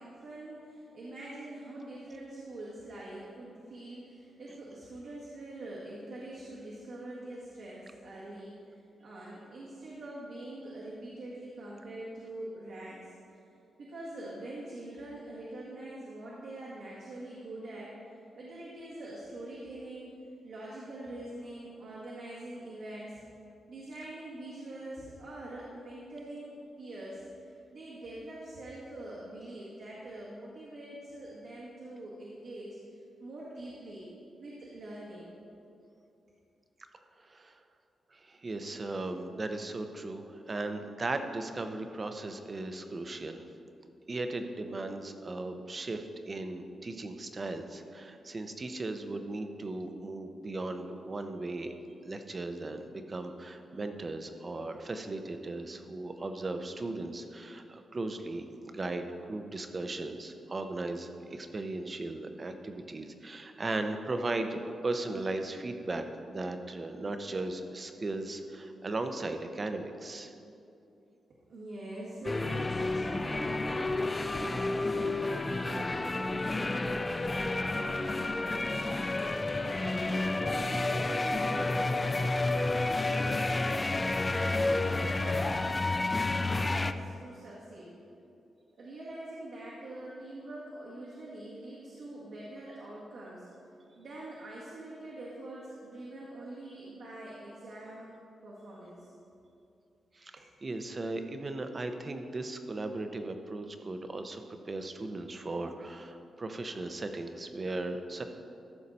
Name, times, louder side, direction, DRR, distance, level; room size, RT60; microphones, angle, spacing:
voice 1, 0.0-13.1 13.8-23.2 23.7-34.0 34.4-35.3 71.5-83.9 84.4-87.9 88.8-93.5 94.0-98.1 98.4-99.1, right 1 dB, 70° right, -7 dB, 1.8 m, -44 dB
voice 2, 37.2-37.5 38.2-43.5 44.1-51.7 52.0-70.3 100.2-108.2, right 2 dB, 30° right, 7 dB, 0.7 m, -37 dB
sound 1, 72.2-86.9, left 2 dB, 20° left, 0.3 m, -30 dB
14.0 x 6.5 x 4.2 m, 2.6 s
wide cardioid pair, 135°, 0 cm